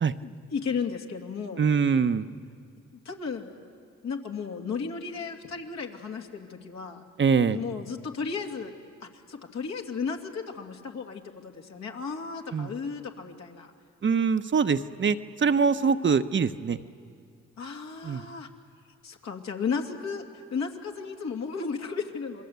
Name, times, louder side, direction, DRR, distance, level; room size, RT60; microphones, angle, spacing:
voice 1, 0.2-1.6 3.0-3.5 4.0-7.1 7.5-8.7 9.0-13.7 17.6-18.5 19.0-22.5, left 5 dB, 65° left, 2 dB, 2.7 m, -34 dB
voice 2, 1.6-2.3 7.2-7.6 12.5-12.7 14.0-16.8 18.0-18.2, right 5 dB, 40° right, 10 dB, 1.0 m, -23 dB
27.5 x 21.5 x 8.3 m, 2.2 s
supercardioid pair, 55°, 29 cm